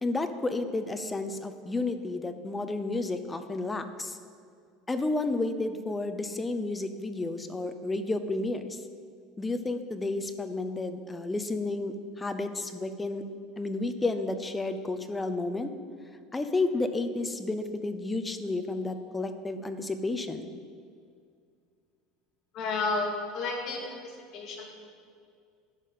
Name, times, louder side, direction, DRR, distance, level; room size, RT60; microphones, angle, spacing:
voice 1, 0.0-4.2 4.9-8.8 9.4-13.2 13.6-15.7 16.3-20.5, left 2 dB, 10° left, 8 dB, 0.6 m, -31 dB
voice 2, 22.5-24.8, left 3 dB, 40° left, 0 dB, 2.1 m, -32 dB
11.0 x 5.5 x 8.4 m, 2.3 s
cardioid pair, 155°, 0 cm